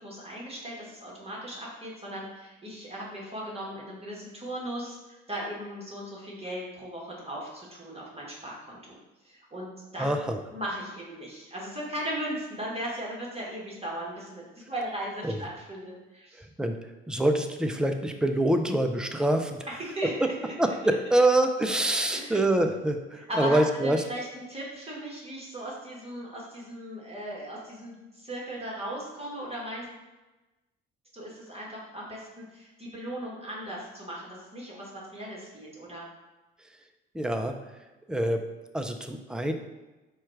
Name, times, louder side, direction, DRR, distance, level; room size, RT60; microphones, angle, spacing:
voice 1, 0.0-9.0 9.2-10.1 10.5-16.5 19.7-20.5 22.1-22.4 23.2-29.9 31.1-36.0, right 1 dB, 20° right, -5 dB, 1.5 m, -37 dB
voice 2, 10.0-10.4 15.2-15.4 16.4-16.8 17.1-19.6 20.6-24.0 37.1-37.5 38.1-38.4 38.7-39.5, right 1 dB, 5° right, 5 dB, 0.5 m, -25 dB
4.4 x 2.4 x 4.4 m, 1.1 s
hypercardioid pair, 50°, 29 cm